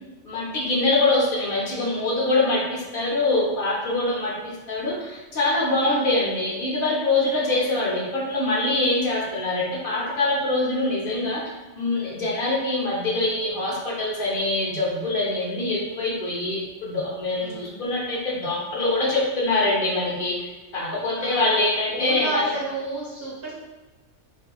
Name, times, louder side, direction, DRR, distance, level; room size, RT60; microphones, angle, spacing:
voice 1, 0.2-11.4 11.8-22.5, left 2 dB, 55° left, -4 dB, 0.9 m, -24 dB
voice 2, 5.9-6.2 7.4-7.8 17.4-17.8 21.2-21.6 21.9-23.5, right 2 dB, 55° right, -8 dB, 1.6 m, -33 dB
3.9 x 2.7 x 2.3 m, 1.2 s
omnidirectional pair, 1.2 m